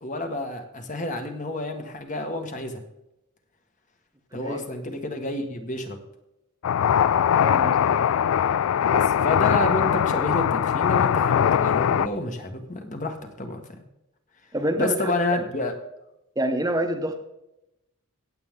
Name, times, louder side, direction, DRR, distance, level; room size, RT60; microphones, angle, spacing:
voice 1, 0.0-2.8 4.3-6.0 8.9-13.6 14.8-15.7, left 2 dB, 35° left, 5 dB, 1.4 m, -29 dB
sound 1, 6.6-12.1, left 8 dB, 85° left, 0.3 m, -21 dB
voice 2, 7.4-7.8 14.5-15.4 16.4-17.2, right 1 dB, 15° right, 5 dB, 1.0 m, -27 dB
16.5 x 7.9 x 3.6 m, 0.89 s
head